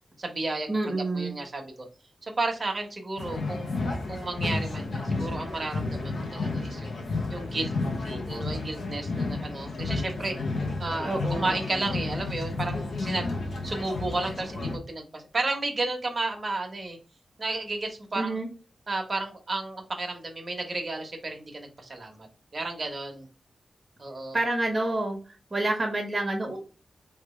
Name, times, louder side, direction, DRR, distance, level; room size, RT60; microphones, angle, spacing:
voice 1, 0.2-1.7 2.2-3.8 4.1-6.9 7.3-7.7 8.0-10.4 10.8-17.0 17.4-18.4 18.9-22.3 22.5-23.3 24.0-24.4, right 2 dB, 35° right, 2 dB, 1.3 m, -33 dB
voice 2, 0.7-1.3 11.0-11.6 18.1-18.5 24.3-25.2 25.5-26.6, right 2 dB, 20° right, 0 dB, 1.4 m, -28 dB
sound 1, 3.2-14.8, left 3 dB, 85° left, 0.9 m, -31 dB
4.9 x 3.3 x 3.2 m, 0.34 s
wide cardioid pair, 115°, 0 cm